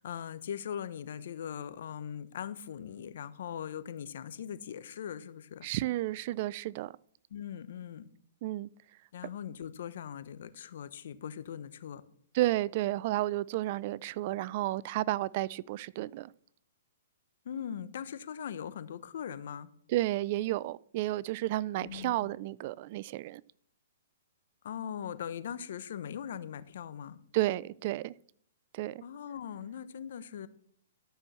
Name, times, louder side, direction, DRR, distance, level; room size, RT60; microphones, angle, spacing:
voice 1, 0.0-5.7 7.3-8.1 9.1-12.0 17.4-19.7 21.8-22.3 24.6-27.2 29.0-30.5, left 8 dB, 65° left, 1.0 m, -40 dB
voice 2, 5.6-6.9 8.4-8.7 12.3-16.3 19.9-23.4 27.3-28.1 28.7-29.0, right 16 dB, 45° right, 0.4 m, -32 dB
12.5 x 6.1 x 7.0 m
hypercardioid pair, 135°, 0 cm